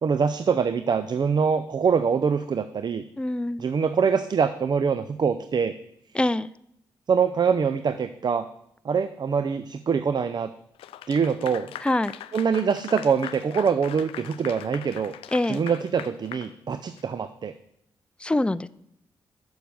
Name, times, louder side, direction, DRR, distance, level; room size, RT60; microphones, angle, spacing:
voice 1, 0.0-3.0 3.6-5.7 7.1-8.5 8.8-10.5 11.1-11.7 12.3-15.1 15.5-17.5, right 6 dB, 50° right, 11 dB, 0.5 m, -24 dB
voice 2, 3.2-3.6 6.1-6.5 11.8-12.1 15.3-15.6 18.2-18.7, left 1 dB, 10° left, 17 dB, 0.4 m, -24 dB
Clapping / Applause, 10.8-17.1, left 11 dB, 80° left, 0.4 m, -41 dB
6.8 x 6.2 x 6.8 m, 0.73 s
supercardioid pair, 45°, 9 cm